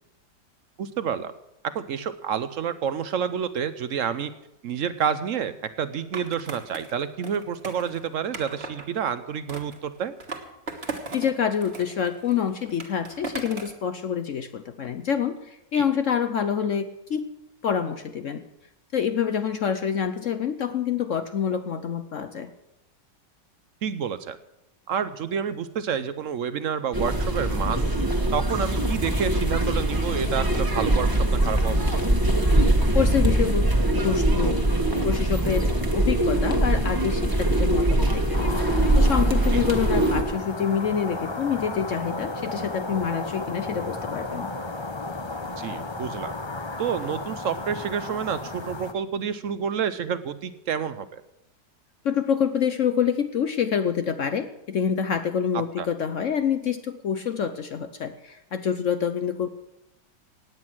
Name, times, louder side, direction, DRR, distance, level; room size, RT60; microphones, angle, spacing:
voice 1, 0.8-1.3 1.7-4.3 4.6-10.1 15.8-15.9 23.8-24.4 24.9-27.9 28.3-31.1 31.4-31.8 45.6-46.3 46.8-51.2 55.8-55.9, right 7 dB, 65° right, 13 dB, 0.8 m, -29 dB
Skateboard, 6.1-8.9 9.5-11.3 11.6-13.8, right 3 dB, 35° right, 1.7 m, -38 dB
voice 2, 11.1-17.3 17.6-18.4 18.9-22.5 32.9-34.6 35.0-38.5 39.0-44.5 52.0-59.5, left 8 dB, 60° left, 10 dB, 0.9 m, -27 dB
sound 1, 26.9-40.2, right 1 dB, 15° right, 1.3 m, -22 dB
sound 2, 38.3-48.9, left 2 dB, 30° left, 0.4 m, -34 dB
17.0 x 9.3 x 6.1 m, 0.87 s
omnidirectional pair, 1.9 m